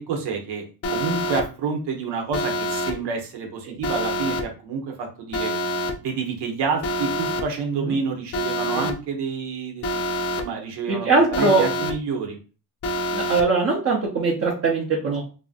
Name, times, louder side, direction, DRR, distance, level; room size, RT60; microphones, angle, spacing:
voice 1, 0.1-5.5 6.0-10.0 10.3-12.4, right 5 dB, 85° right, 2 dB, 1.0 m, -28 dB
Alarm, 0.8-1.4 2.3-2.9 3.8-4.4 5.3-5.9 6.8-7.4 8.3-8.9 9.8-10.4 11.3-11.9 12.8-13.4, left 1 dB, 40° left, 0.4 m, -26 dB
voice 2, 10.9-11.6 13.1-15.2, right 3 dB, 35° right, -4 dB, 0.7 m, -21 dB
2.9 x 2.6 x 2.4 m, 0.35 s
cardioid pair, 125°, 40 cm